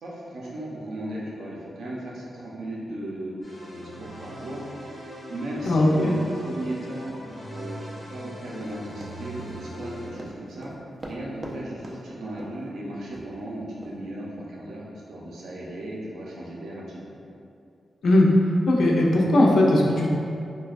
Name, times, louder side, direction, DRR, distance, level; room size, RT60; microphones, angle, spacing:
voice 1, 0.0-4.6 5.3-7.1 7.5-7.8 8.1-10.7 11.0-17.0, right 1 dB, 90° right, -5 dB, 0.6 m, -36 dB
sound 1, 3.4-10.1, equal, 10° left, 0.9 m, -40 dB
voice 2, 5.6-6.1 18.0-18.3 18.7-20.1, left 1 dB, 75° left, -2 dB, 0.4 m, -18 dB
Run, 8.6-11.6 11.8-12.0 12.4-12.6 13.1-13.3 13.8-13.9, right 1 dB, 40° right, 0.4 m, -40 dB
3.9 x 2.2 x 2.4 m, 2.6 s
wide cardioid pair, 105°, 0 cm